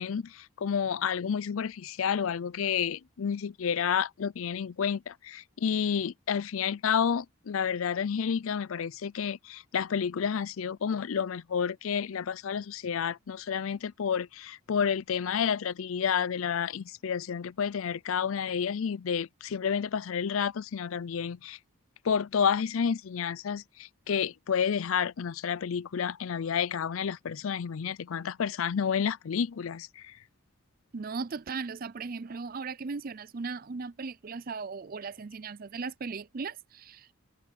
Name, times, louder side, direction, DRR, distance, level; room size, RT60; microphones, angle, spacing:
voice 1, 0.0-21.6 22.0-30.2, left 7 dB, 75° left, 0.5 m, -30 dB
voice 2, 30.9-37.1, right 4 dB, 45° right, 0.5 m, -37 dB
head